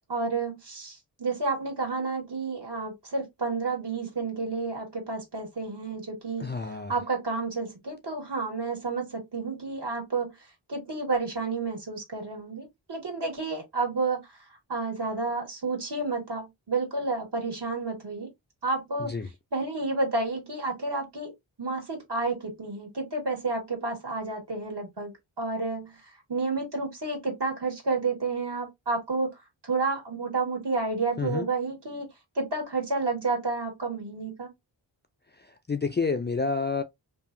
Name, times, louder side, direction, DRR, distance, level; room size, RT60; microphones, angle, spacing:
voice 1, 0.1-6.6 6.9-10.3 10.7-14.2 14.7-18.3 18.6-19.1 19.5-21.3 21.6-25.1 25.4-26.0 26.3-29.3 29.6-32.1 32.3-34.5, right 3 dB, 65° right, 1.7 m, -30 dB
voice 2, 6.4-7.0 19.0-19.3 31.2-31.5 35.4-36.8, left 4 dB, 25° left, 0.3 m, -29 dB
2.8 x 2.4 x 2.5 m
wide cardioid pair, 60°, 45 cm